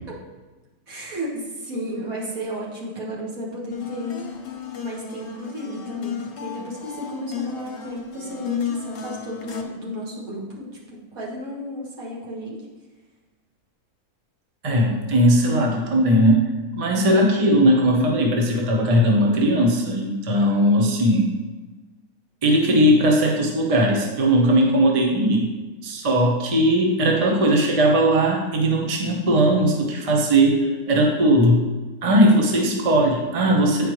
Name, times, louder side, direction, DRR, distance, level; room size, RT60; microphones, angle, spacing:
voice 1, 0.9-4.2 4.8-12.6 17.4-17.6 32.5-32.8, equal, 60° right, -5 dB, 2.0 m, -33 dB
sound 1, 3.7-9.6, left 8 dB, 55° left, 0.9 m, -33 dB
voice 2, 14.6-21.3 22.4-25.5 25.8-31.6 32.0-33.9, right 1 dB, 30° right, 0 dB, 0.7 m, -18 dB
8.7 x 5.1 x 3.1 m, 1.2 s
omnidirectional pair, 1.7 m